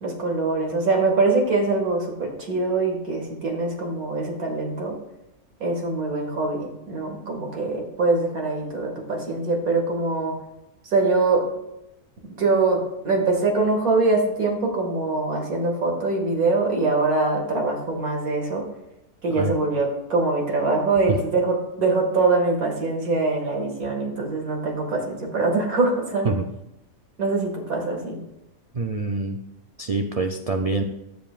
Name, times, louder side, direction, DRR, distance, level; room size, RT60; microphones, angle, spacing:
voice 1, 0.0-4.9 5.6-10.4 10.8-11.5 12.4-18.6 19.2-26.3 27.2-28.2, right 3 dB, 85° right, 0 dB, 2.4 m, -23 dB
voice 2, 28.7-29.4 29.8-30.8, right 3 dB, 70° right, 4 dB, 0.3 m, -25 dB
15.5 x 7.5 x 2.5 m, 0.91 s
omnidirectional pair, 1.5 m